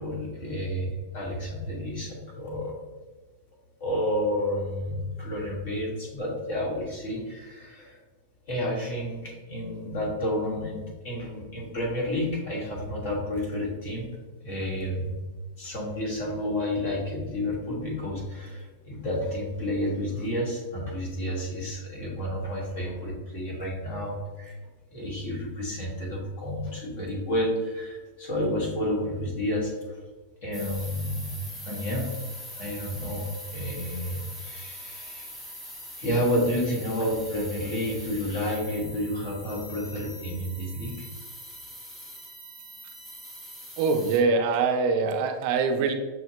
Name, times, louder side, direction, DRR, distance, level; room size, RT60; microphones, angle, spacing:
voice 1, 0.0-2.7 3.8-8.0 8.5-14.1 14.4-15.2 15.6-24.6 24.9-30.0 30.4-32.1 32.6-35.4 36.0-41.1, left 1 dB, 50° left, -2 dB, 1.3 m, -30 dB
sound 1, 30.5-44.2, equal, 15° left, 0.7 m, -42 dB
voice 2, 43.8-45.9, right 4 dB, 40° right, 5 dB, 0.3 m, -23 dB
6.1 x 2.1 x 2.8 m, 1.3 s
supercardioid pair, 170°, 0 cm